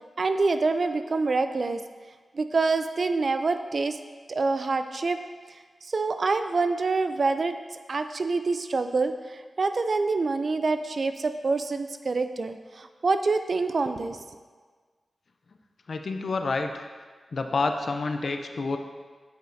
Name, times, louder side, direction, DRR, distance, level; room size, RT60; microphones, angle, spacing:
voice 1, 0.2-1.8 2.3-4.0 4.3-5.2 5.8-7.6 7.9-14.2, right 3 dB, 60° right, 9 dB, 0.4 m, -26 dB
voice 2, 15.9-16.8 17.3-18.8, left 3 dB, 65° left, 6 dB, 0.5 m, -28 dB
7.8 x 5.1 x 2.6 m, 1.5 s
cardioid pair, 40°, 0 cm